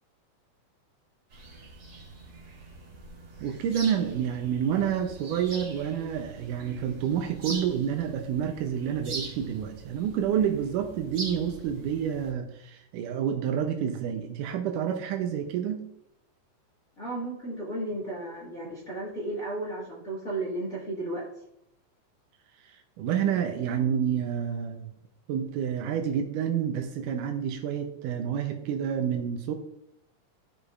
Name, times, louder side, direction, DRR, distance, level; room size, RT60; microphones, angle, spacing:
sound 1, 1.3-12.3, right 3 dB, 40° right, 1.9 m, -43 dB
voice 1, 3.4-15.8 23.0-24.9 25.3-29.5, right 8 dB, 85° right, 4 dB, 2.3 m, -29 dB
voice 2, 17.0-21.3, right 2 dB, 30° left, -7 dB, 1.8 m, -34 dB
13.5 x 5.0 x 2.5 m, 0.77 s
omnidirectional pair, 3.7 m